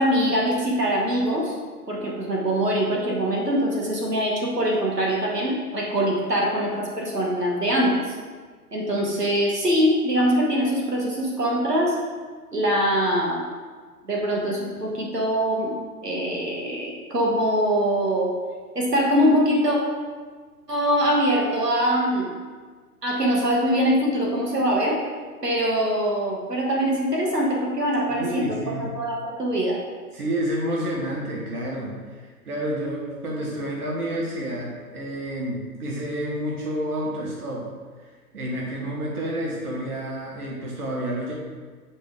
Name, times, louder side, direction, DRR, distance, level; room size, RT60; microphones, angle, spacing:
voice 1, 0.0-1.5 1.9-8.2 8.7-11.9 12.5-13.4 14.1-15.7 16.0-18.3 18.7-19.8 20.7-22.3 23.0-25.0 25.4-28.5 28.8-29.8, equal, 85° right, -2 dB, 1.5 m, -23 dB
voice 2, 28.1-28.9 30.1-37.6 38.0-38.1 38.3-41.3, right 1 dB, 70° right, -3 dB, 1.3 m, -29 dB
7.3 x 4.4 x 3.7 m, 1.5 s
figure-of-eight pair, 120°, 47 cm